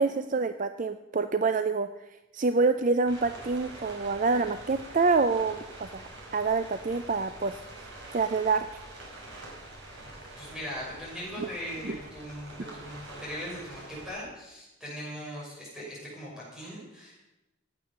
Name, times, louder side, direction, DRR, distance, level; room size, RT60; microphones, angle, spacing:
voice 1, 0.0-1.9 2.3-7.6 8.1-8.8 11.8-12.0, right 4 dB, 40° right, 10 dB, 0.5 m, -27 dB
sound 1, 3.1-14.1, right 1 dB, 55° right, 4.6 m, -45 dB
voice 2, 10.4-17.2, equal, 5° right, -6 dB, 6.4 m, -40 dB
16.0 x 9.0 x 6.8 m, 0.96 s
head